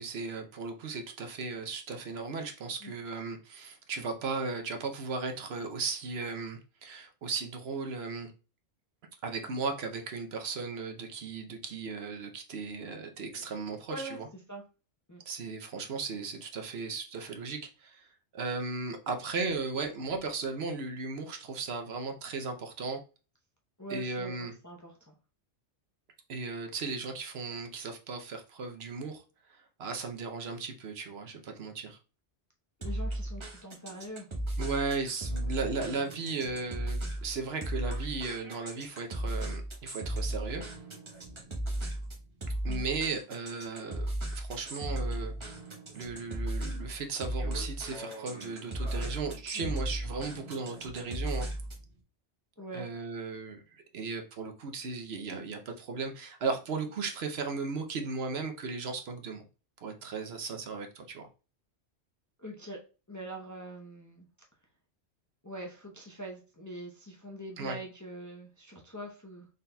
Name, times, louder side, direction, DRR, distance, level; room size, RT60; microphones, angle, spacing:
voice 1, 0.0-8.3 9.2-14.3 15.3-18.1 18.3-23.0 23.9-24.5 26.3-29.2 29.5-32.0 34.6-40.6 42.6-45.3 45.9-51.5 52.7-59.4 59.8-61.3 67.6-67.8, right 4 dB, 65° right, 0.9 m, -36 dB
voice 2, 13.9-14.2 14.5-14.6 15.1-15.2 23.8-25.1 32.8-34.3 42.7-42.9 49.5-49.7 52.6-52.9 62.4-62.8 63.1-64.3 65.4-69.5, right 1 dB, 20° left, 0.6 m, -43 dB
sound 1, 32.8-51.9, right 1 dB, 25° right, 1.1 m, -36 dB
4.0 x 3.9 x 2.2 m
omnidirectional pair, 1.2 m